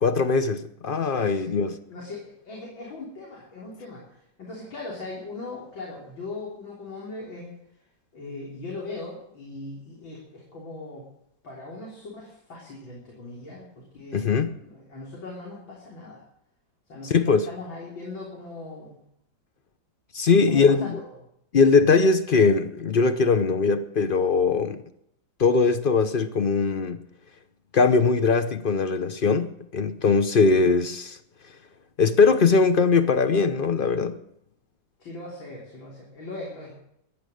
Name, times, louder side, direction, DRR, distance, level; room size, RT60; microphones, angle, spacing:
voice 1, 0.0-1.8 14.1-14.5 17.0-17.5 20.1-21.0 21.5-24.8 25.4-27.0 27.7-31.2 32.0-34.2, left 4 dB, 70° left, 0.5 m, -21 dB
voice 2, 1.0-1.5 1.9-7.5 8.1-11.1 11.4-16.2 16.9-19.0 20.5-21.1 35.0-36.8, left 2 dB, 85° left, 4.3 m, -39 dB
17.5 x 12.0 x 6.5 m
omnidirectional pair, 2.1 m